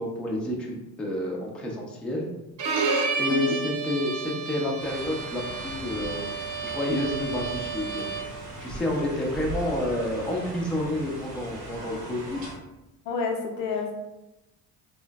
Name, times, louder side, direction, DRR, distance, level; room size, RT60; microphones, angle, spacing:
voice 1, 0.0-2.3 3.2-6.3 6.6-12.4, left 1 dB, ahead, -1 dB, 0.4 m, -29 dB
Bowed string instrument, 2.6-8.4, right 4 dB, 40° right, 0.7 m, -31 dB
sound 1, 4.8-12.6, right 1 dB, 90° right, 0.8 m, -39 dB
voice 2, 13.1-14.0, left 4 dB, 70° left, 2 dB, 0.6 m, -29 dB
3.1 x 2.0 x 2.2 m, 0.98 s
hypercardioid pair, 55°, 48 cm